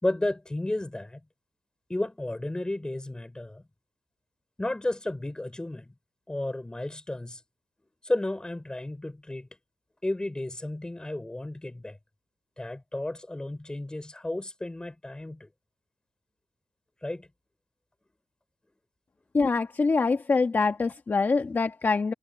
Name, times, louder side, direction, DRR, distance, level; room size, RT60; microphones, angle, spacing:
voice 1, 0.0-1.2 1.9-3.6 4.6-5.9 6.3-7.4 8.0-9.5 10.0-12.0 12.6-15.5 17.0-17.3, left 1 dB, 10° left, 4.9 m, -32 dB
voice 2, 19.3-22.1, left 4 dB, 30° left, 1.3 m, -24 dB
wide cardioid pair, 135°, 7 cm